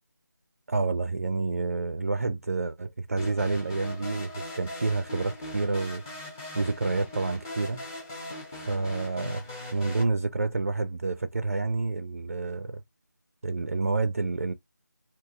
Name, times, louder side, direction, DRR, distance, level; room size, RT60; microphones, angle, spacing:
voice 1, 0.7-6.0 6.5-7.8 8.5-12.8 13.4-14.5, right 3 dB, 45° right, 0.4 m, -29 dB
sound 1, 3.2-10.0, left 1 dB, 10° left, 0.6 m, -40 dB
3.6 x 2.7 x 2.3 m
figure-of-eight pair, 165°, 10 cm